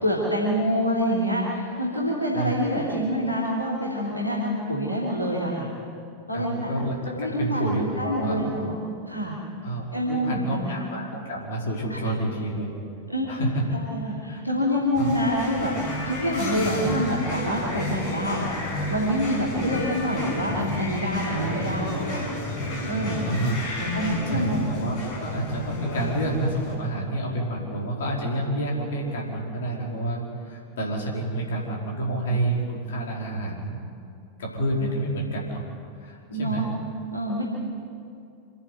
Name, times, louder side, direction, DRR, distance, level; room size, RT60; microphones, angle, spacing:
voice 1, 0.0-5.7 6.3-6.7 7.0-8.8 9.1-9.4 9.9-10.8 13.1-13.3 13.7-18.6 18.9-22.2 22.9-23.3 23.9-24.7 34.8-34.9 36.3-36.7 37.1-37.4, equal, 85° left, -5 dB, 3.3 m, -26 dB
voice 2, 6.3-8.4 9.6-12.7 13.3-13.6 14.0-14.4 15.0-15.1 23.2-33.8 34.4-35.6 36.0-36.6, right 1 dB, 60° left, -2 dB, 4.8 m, -29 dB
sound 1, 14.9-26.7, left 1 dB, 40° left, 6.1 m, -32 dB
27.5 x 10.5 x 9.5 m, 2.5 s
figure-of-eight pair, 90°, 0 cm